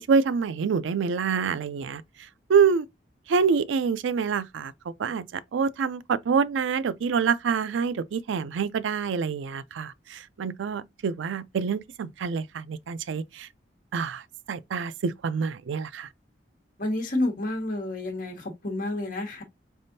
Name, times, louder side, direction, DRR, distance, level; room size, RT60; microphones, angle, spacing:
voice 1, 0.0-2.9 3.3-4.7 5.0-13.5 13.9-16.1, right 6 dB, 90° right, 0.4 m, -26 dB
voice 2, 16.8-19.4, left 2 dB, 50° left, 1.3 m, -29 dB
4.1 x 3.5 x 2.6 m
head